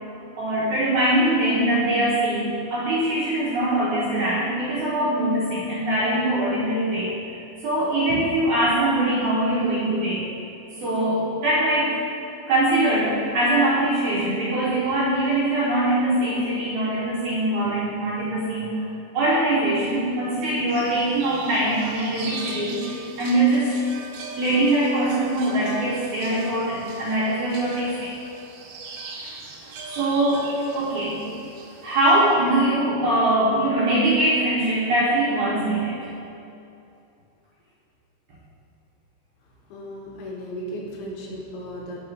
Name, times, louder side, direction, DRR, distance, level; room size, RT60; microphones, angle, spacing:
voice 1, 0.4-7.2 7.6-10.3 10.8-12.0 12.5-23.7 24.4-28.2 30.0-31.3 31.8-36.0, right 1 dB, 70° right, -7 dB, 1.9 m, -22 dB
sound 1, 20.7-32.4, right 3 dB, 85° right, 2.8 m, -39 dB
voice 2, 39.4-42.1, equal, 80° left, -2 dB, 2.8 m, -35 dB
8.4 x 3.7 x 5.7 m, 2.7 s
omnidirectional pair, 4.5 m